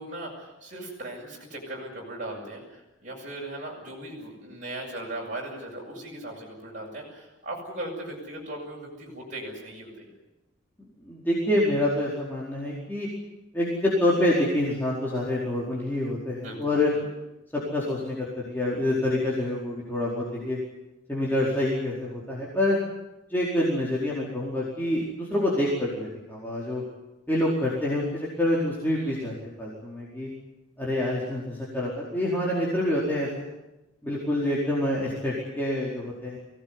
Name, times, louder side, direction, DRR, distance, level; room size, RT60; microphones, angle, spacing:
voice 1, 0.0-10.1 16.4-17.0 28.9-29.3, right 1 dB, 40° right, -3 dB, 7.5 m, -38 dB
voice 2, 10.8-13.1 13.5-16.9 17.5-20.6 21.1-22.8 23.3-26.8 27.3-30.3 30.8-33.5 34.0-36.4, left 1 dB, 10° left, -6 dB, 4.6 m, -27 dB
24.0 x 18.5 x 9.8 m, 0.98 s
head